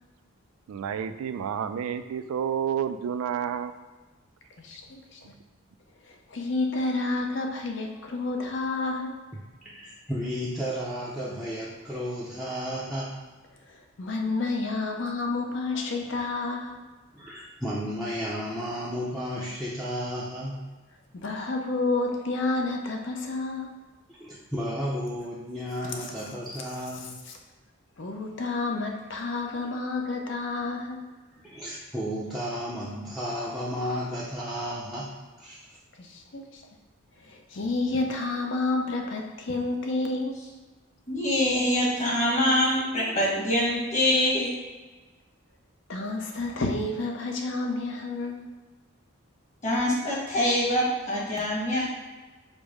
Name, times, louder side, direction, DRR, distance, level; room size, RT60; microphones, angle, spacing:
voice 1, 0.7-3.7, right 8 dB, 85° right, 11 dB, 0.3 m, -30 dB
voice 2, 4.6-5.2 6.0-9.1 13.7-16.8 21.2-23.7 28.0-31.0 36.0-36.6 37.2-40.3 45.9-48.5, left 3 dB, 60° left, 2 dB, 0.6 m, -30 dB
voice 3, 9.6-13.2 17.1-20.6 24.1-27.1 31.4-35.6, equal, ahead, -9 dB, 0.5 m, -33 dB
voice 4, 41.1-44.5 49.6-51.9, left 1 dB, 35° left, -6 dB, 1.3 m, -24 dB
5.2 x 2.1 x 4.8 m, 1.3 s
head